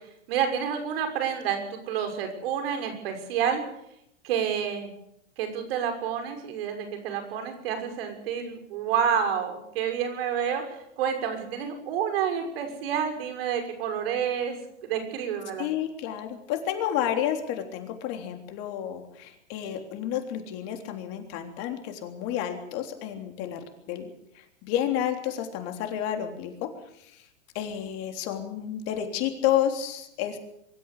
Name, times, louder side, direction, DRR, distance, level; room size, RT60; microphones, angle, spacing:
voice 1, 0.3-3.6 4.2-4.9 5.4-14.6 14.8-15.7, right 8 dB, 55° right, 6 dB, 6.4 m, -29 dB
voice 2, 15.6-24.1 24.3-26.7 26.9-27.3 27.6-30.4, left 10 dB, 40° left, 5 dB, 3.5 m, -30 dB
24.0 x 13.5 x 8.6 m, 0.76 s
hypercardioid pair, 130°, 35 cm